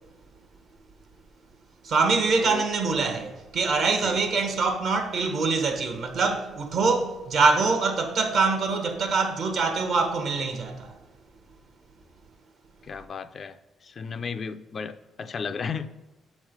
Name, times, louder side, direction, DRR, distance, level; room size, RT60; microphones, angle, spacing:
voice 1, 1.8-11.0, right 4 dB, 65° right, 0.9 m, -24 dB
voice 2, 12.8-16.0, left 5 dB, 50° left, 0.3 m, -34 dB
7.0 x 3.1 x 5.0 m
cardioid pair, 90°, 0 cm